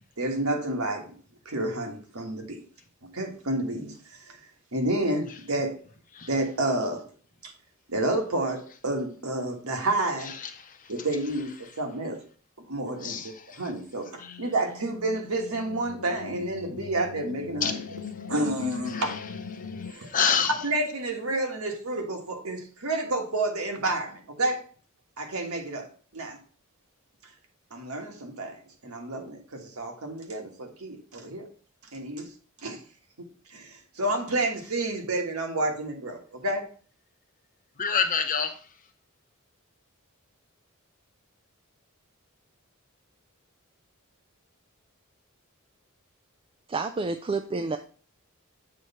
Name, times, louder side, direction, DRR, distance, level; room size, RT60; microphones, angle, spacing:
voice 1, 0.2-1.1 1.4-2.6 3.1-4.4 4.7-5.8 6.3-7.1 7.4-7.5 7.9-10.3 10.9-12.2 12.7-17.8 18.3-19.2 19.8-20.1 20.5-24.6 25.2-25.9 26.1-26.4 27.7-31.5 31.9-32.3 32.6-32.8 33.5-36.7, right 2 dB, 75° right, 1.5 m, -30 dB
voice 2, 10.4-10.8 13.0-13.6 14.2-14.3 17.6-17.8 18.9-19.2 19.6-20.5 37.8-38.5, left 7 dB, 40° left, 0.8 m, -28 dB
sound 1, 14.0-19.9, left 5 dB, 75° left, 0.4 m, -40 dB
voice 3, 46.7-47.8, right 3 dB, 25° right, 0.3 m, -29 dB
7.7 x 3.2 x 5.5 m
head